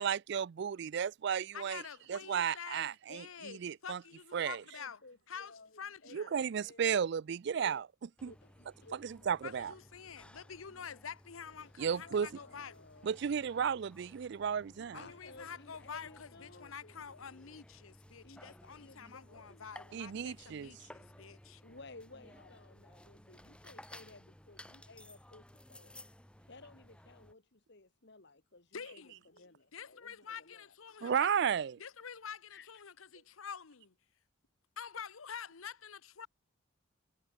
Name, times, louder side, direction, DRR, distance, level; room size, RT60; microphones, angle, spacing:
voice 1, 0.0-1.8 2.1-4.0 4.3-4.6 6.1-7.9 8.2-8.3 8.9-9.7 11.8-12.3 13.0-15.0 19.9-20.7 31.0-31.8, right 7 dB, 55° right, 0.3 m, -34 dB
voice 2, 1.5-5.0 5.3-6.3 9.4-12.8 14.9-21.6 28.7-29.2 29.7-31.3 31.8-33.9 34.8-36.3, left 7 dB, 85° left, 0.9 m, -47 dB
voice 3, 4.7-6.9 7.5-7.8 8.2-9.5 11.6-13.3 14.9-16.9 18.2-19.7 21.6-25.9 26.5-30.7 31.0-31.1 32.5-32.8, left 3 dB, 55° left, 1.7 m, -57 dB
sound 1, 8.2-27.3, left 1 dB, 5° left, 1.9 m, -57 dB
head